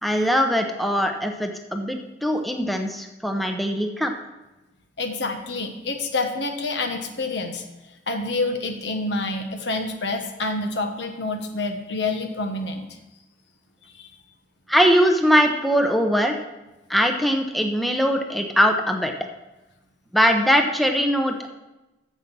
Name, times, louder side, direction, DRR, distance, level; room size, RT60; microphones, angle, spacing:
voice 1, 0.0-4.1 14.7-16.4 16.9-19.1 20.1-21.4, equal, ahead, 4 dB, 0.7 m, -21 dB
voice 2, 5.0-7.6 8.1-12.9 13.8-14.1, left 2 dB, 70° left, 5 dB, 1.2 m, -27 dB
9.3 x 7.3 x 6.0 m, 1.0 s
head